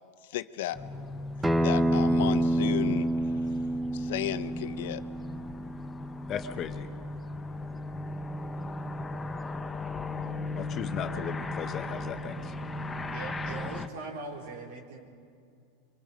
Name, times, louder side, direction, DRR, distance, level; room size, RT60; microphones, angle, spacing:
voice 1, 0.2-0.8 1.6-3.1 3.9-5.0, left 14 dB, 75° left, 13 dB, 0.8 m, -33 dB
sound 1, 0.7-13.9, left 2 dB, 15° left, 1.0 m, -37 dB
Acoustic guitar, 1.4-6.6, right 1 dB, 10° right, 0.8 m, -28 dB
voice 2, 6.3-6.9 10.6-12.4, left 8 dB, 35° left, 8 dB, 1.3 m, -36 dB
voice 3, 13.1-15.0, right 3 dB, 70° right, 0 dB, 4.3 m, -41 dB
24.5 x 24.5 x 5.2 m, 2.3 s
supercardioid pair, 120°, 0 cm